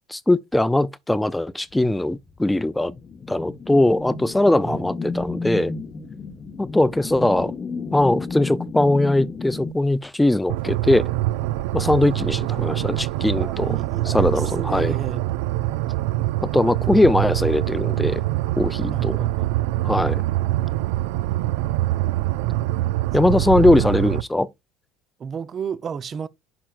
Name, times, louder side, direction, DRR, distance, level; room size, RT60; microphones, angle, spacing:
voice 1, 0.1-2.9 3.3-5.7 6.6-7.5 7.9-11.0 11.7-13.8 14.1-14.9 16.5-18.2 18.6-19.2 19.8-20.2 23.1-24.5, left 1 dB, 10° left, 0.5 m, -20 dB
sound 1, 2.7-9.7, left 4 dB, 35° left, 0.9 m, -32 dB
sound 2, 10.5-24.2, right 16 dB, 75° right, 0.4 m, -24 dB
voice 2, 13.4-15.2 18.9-19.5 25.2-26.3, right 7 dB, 40° right, 0.7 m, -33 dB
9.9 x 5.9 x 2.4 m
hypercardioid pair, 75°, 0 cm